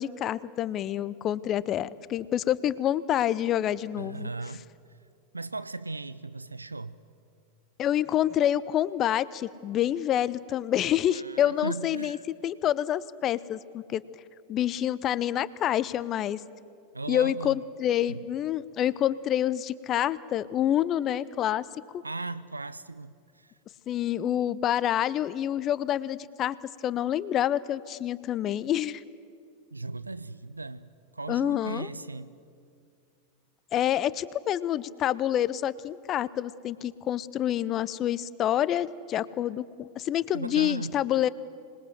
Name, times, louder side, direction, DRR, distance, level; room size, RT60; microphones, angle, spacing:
voice 1, 0.0-4.3 7.8-12.2 12.4-14.0 14.5-16.4 17.1-21.6 21.9-22.0 23.9-26.6 26.8-29.0 31.3-31.9 33.7-41.3, left 11 dB, 30° left, 19 dB, 0.6 m, -27 dB
voice 2, 4.0-4.7 5.3-7.0 11.1-12.2 16.9-17.6 18.1-18.2 22.0-23.5 29.7-32.4 40.3-40.9, right 3 dB, 80° right, 16 dB, 0.5 m, -37 dB
26.0 x 20.5 x 7.8 m, 2.3 s
figure-of-eight pair, 90°, 0 cm